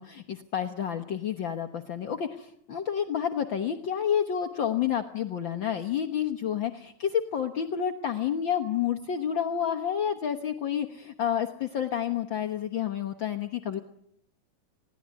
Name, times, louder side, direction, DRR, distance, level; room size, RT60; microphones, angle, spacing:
voice 1, 0.0-13.8, left 9 dB, 70° left, 6 dB, 1.1 m, -29 dB
28.0 x 18.5 x 9.5 m, 0.72 s
omnidirectional pair, 4.0 m